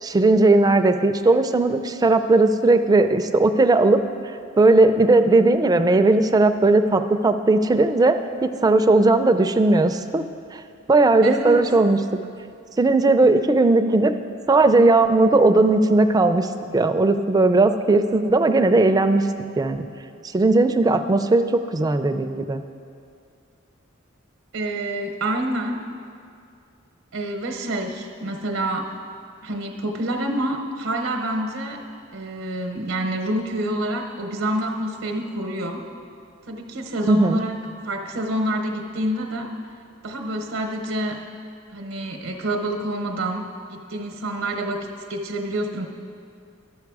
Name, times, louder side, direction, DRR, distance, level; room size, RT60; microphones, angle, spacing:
voice 1, 0.0-10.2 10.5-10.6 10.9-12.0 12.8-14.1 14.5-19.3 19.6-19.9 20.3-22.6 37.1-37.4, right 2 dB, 20° right, 8 dB, 0.3 m, -17 dB
voice 2, 11.2-11.6 24.5-25.8 27.1-28.9 29.4-31.8 32.1-35.8 36.5-37.6 37.8-39.5 40.0-41.2 41.7-45.9, right 1 dB, 85° right, 3 dB, 0.7 m, -27 dB
11.5 x 6.6 x 4.7 m, 2.4 s
head